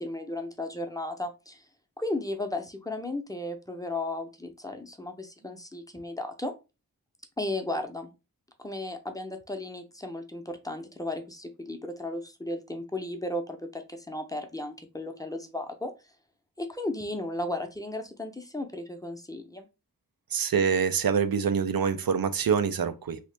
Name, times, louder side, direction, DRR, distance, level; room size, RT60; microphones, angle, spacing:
voice 1, 0.0-1.7 2.0-6.5 7.4-8.1 8.6-15.9 16.6-19.7, left 1 dB, 10° left, 0.6 m, -35 dB
voice 2, 20.3-23.2, right 6 dB, 85° right, 0.5 m, -25 dB
3.0 x 2.8 x 3.3 m
wide cardioid pair, 80°, 35 cm